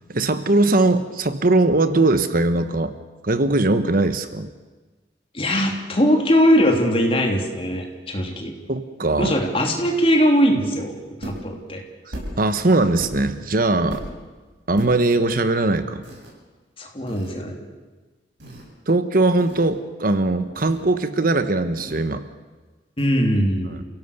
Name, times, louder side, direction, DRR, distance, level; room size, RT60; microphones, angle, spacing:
voice 1, 0.1-2.9 3.2-4.5 8.7-9.4 12.1-14.0 14.7-16.0 18.9-22.2 23.7-23.8, right 2 dB, 55° right, 10 dB, 1.2 m, -20 dB
voice 2, 5.3-8.5 9.2-10.9 11.2-11.8 16.8-17.7 23.0-23.8, equal, 30° left, 2 dB, 3.4 m, -20 dB
sound 1, 11.2-11.5 12.1-12.5 13.0-13.4 13.9-14.2 14.8-15.0 16.0-16.3 17.1-17.3 18.4-18.7 19.4-19.8 20.5-20.9 21.8-22.2 23.0-23.1, equal, 80° right, 7.5 m, -36 dB
29.5 x 17.0 x 6.8 m, 1.3 s
head